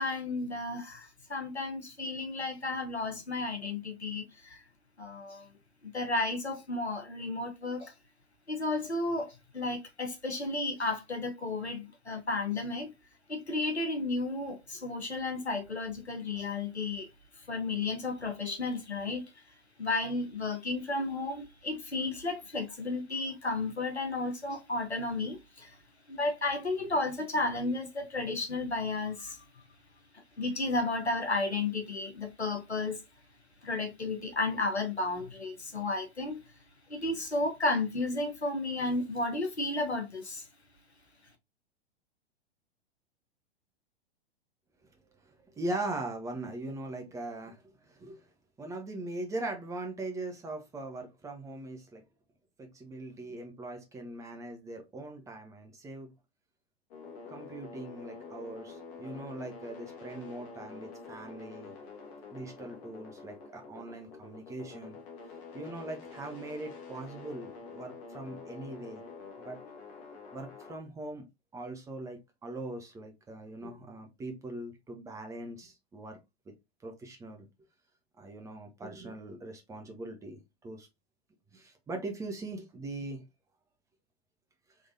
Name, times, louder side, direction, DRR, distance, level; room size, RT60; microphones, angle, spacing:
voice 1, 0.0-4.6 5.0-5.5 5.8-7.9 8.5-12.9 13.3-17.1 17.5-19.3 19.8-25.7 26.1-29.4 30.4-33.0 33.6-36.4 36.9-40.4, left 2 dB, 85° left, 1.0 m, -33 dB
voice 2, 45.6-48.3 48.6-52.0 52.6-56.1 57.3-61.7 62.3-65.0 65.5-69.0 69.4-69.6 70.3-71.2 71.5-76.2 76.8-77.5 78.2-80.9 81.5-83.2, right 2 dB, 10° right, 0.9 m, -40 dB
sound 1, 56.9-70.7, left 4 dB, 40° left, 1.3 m, -47 dB
3.5 x 3.4 x 2.6 m
figure-of-eight pair, 105°, 32 cm